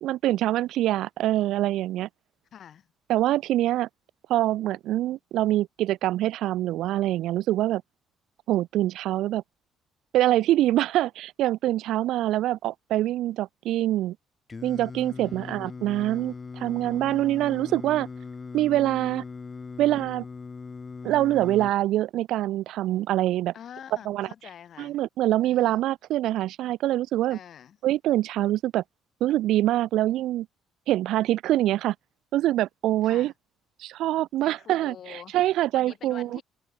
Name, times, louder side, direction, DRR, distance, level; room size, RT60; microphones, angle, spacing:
voice 1, 0.0-2.1 3.1-3.9 4.3-7.8 8.5-9.4 10.1-14.2 14.6-18.1 18.5-19.2 19.8-20.2 21.0-23.5 24.1-24.3 24.8-27.4 27.8-28.8 29.2-30.5 30.9-31.9 32.3-33.3 33.8-36.4, right 14 dB, 70° right, 0.5 m, -25 dB
voice 2, 2.5-2.9 15.2-15.9 23.5-25.0 25.4-25.8 27.3-27.8 33.0-33.3 34.4-35.4 35.7-36.4, left 9 dB, 45° left, 3.1 m, -46 dB
Singing, 14.5-21.7, left 4 dB, 20° left, 3.4 m, -39 dB
open air
cardioid pair, 155°, 0 cm